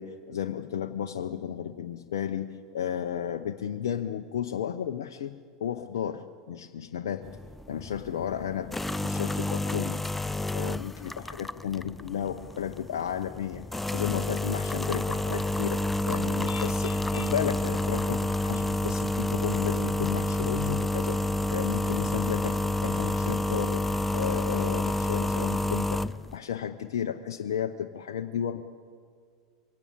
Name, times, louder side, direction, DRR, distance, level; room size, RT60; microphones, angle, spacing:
voice 1, 0.0-7.3 7.7-8.7 9.0-10.0 10.5-13.6 13.9-21.2 21.5-23.9 24.1-26.0 26.3-28.6, left 9 dB, 70° left, 6 dB, 0.8 m, -33 dB
sound 1, 7.2-26.4, left 1 dB, 10° left, 0.5 m, -29 dB
23.0 x 17.0 x 8.5 m, 2.1 s
figure-of-eight pair, 85°, 2 cm